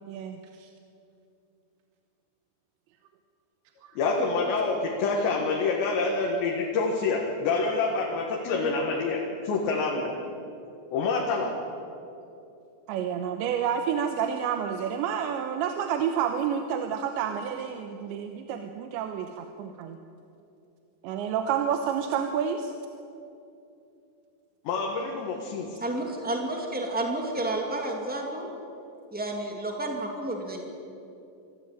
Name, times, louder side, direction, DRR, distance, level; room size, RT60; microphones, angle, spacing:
voice 1, 0.1-0.7 3.8-3.9 12.9-20.0 21.0-22.7, right 8 dB, 85° right, 6 dB, 3.2 m, -29 dB
voice 2, 4.0-10.1 10.9-11.5 24.7-25.8, left 3 dB, 75° left, -1 dB, 3.9 m, -27 dB
voice 3, 25.8-28.5 29.1-30.6, right 2 dB, 5° right, 1 dB, 0.7 m, -31 dB
25.5 x 15.0 x 8.9 m, 2.7 s
omnidirectional pair, 5.1 m